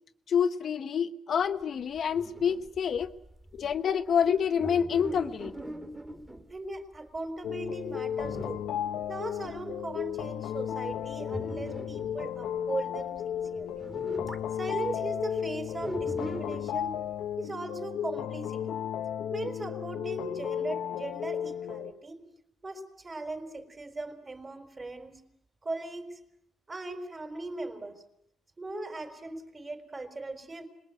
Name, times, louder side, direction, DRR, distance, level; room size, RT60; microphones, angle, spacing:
voice 1, 0.3-3.1 3.5-5.5, left 7 dB, 55° left, 1.1 m, -27 dB
sound 1, 2.0-6.6 7.2-7.3 7.6-7.7 8.1-8.8 9.1-9.2 9.4-9.8 10.2-10.4 10.9-12.2 13.2-13.3 13.6-14.5 15.8-16.8, right 1 dB, 10° right, 2.8 m, -40 dB
voice 2, 6.5-8.7 9.1-13.8 14.5-17.0 17.4-18.8 19.3-22.2 22.6-25.1 25.6-26.2 26.7-28.0 28.6-30.7, right 2 dB, 30° right, 4.7 m, -38 dB
sound 2, 7.4-21.9, left 9 dB, 85° left, 1.0 m, -34 dB
26.5 x 21.0 x 9.2 m
cardioid pair, 90°, 0 cm